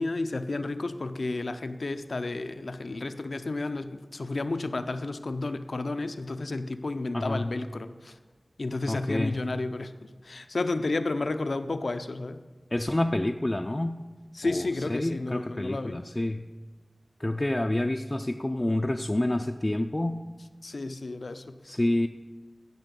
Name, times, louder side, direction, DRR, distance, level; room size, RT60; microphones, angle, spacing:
voice 1, 0.0-8.1 8.6-12.4 14.3-16.0 20.6-21.6, left 2 dB, 80° left, 10 dB, 0.5 m, -32 dB
voice 2, 7.1-7.5 8.9-9.4 12.7-14.0 14.4-16.4 17.2-20.2 21.6-22.1, left 1 dB, 30° left, 4 dB, 0.4 m, -28 dB
15.0 x 5.6 x 5.3 m, 1.3 s
wide cardioid pair, 60°, 0 cm